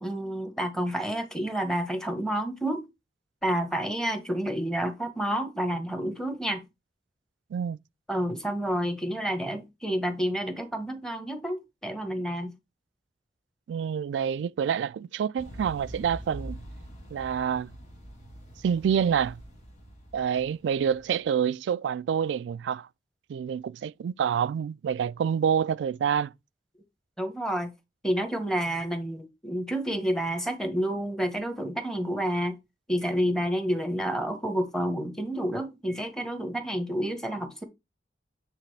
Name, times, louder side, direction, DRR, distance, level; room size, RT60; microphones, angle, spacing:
voice 1, 0.0-2.8 3.4-6.6 8.1-12.5 27.2-27.7 28.0-32.6 32.9-37.6, equal, 5° left, 1.1 m, -29 dB
voice 2, 13.7-16.6 17.1-17.7 18.6-19.4 20.1-22.9 23.3-26.3, right 8 dB, 85° right, 0.3 m, -27 dB
sound 1, 15.4-21.2, right 1 dB, 45° left, 1.7 m, -44 dB
8.2 x 3.6 x 3.3 m
head